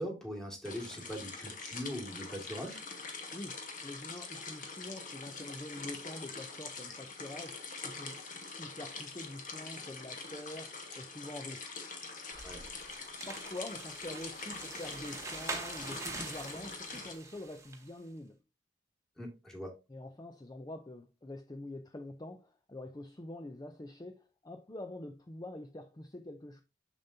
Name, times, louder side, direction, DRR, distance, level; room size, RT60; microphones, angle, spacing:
voice 1, 0.0-2.8 12.4-12.6 19.2-19.7, equal, 5° left, 2.0 m, -41 dB
sound 1, 0.6-17.1, left 4 dB, 45° left, 1.6 m, -44 dB
voice 2, 3.3-8.2 8.6-11.8 13.3-18.4 19.9-26.6, left 1 dB, 20° left, 0.5 m, -45 dB
sound 2, 12.3-17.9, right 3 dB, 15° right, 1.1 m, -44 dB
7.0 x 6.7 x 2.7 m
head